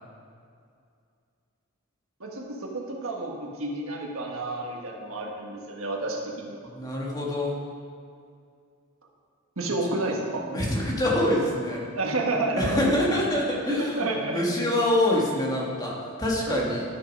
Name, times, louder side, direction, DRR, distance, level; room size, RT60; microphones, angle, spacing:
voice 1, 2.2-6.6 9.6-10.5 11.9-13.0 13.7-14.7 16.5-16.7, right 2 dB, 75° right, 0 dB, 1.4 m, -30 dB
voice 2, 6.7-7.6 10.5-11.8 12.6-16.8, left 1 dB, 20° left, -3 dB, 1.6 m, -25 dB
11.5 x 6.5 x 5.3 m, 2.3 s
head